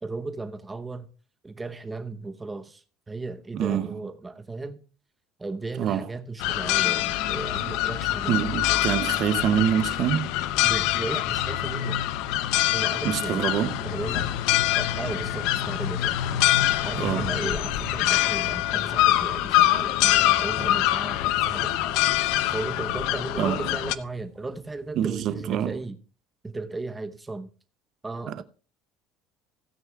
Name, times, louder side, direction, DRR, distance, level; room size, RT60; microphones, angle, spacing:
voice 1, 0.0-1.1 1.4-4.8 5.4-8.4 10.6-12.0 12.7-13.5 13.8-14.3 14.7-16.2 16.8-21.7 22.5-26.0 26.4-27.5 28.0-28.4, right 3 dB, 10° right, 0.8 m, -35 dB
voice 2, 3.5-4.0 5.8-6.1 8.3-10.3 13.0-13.8 17.0-17.4 23.4-23.7 25.0-25.8 28.3-28.4, right 9 dB, 50° right, 0.7 m, -26 dB
sound 1, 6.4-24.0, left 14 dB, 75° left, 0.6 m, -25 dB
sound 2, 10.8-25.8, right 6 dB, 70° right, 2.9 m, -48 dB
17.0 x 9.3 x 2.3 m
cardioid pair, 145°, 0 cm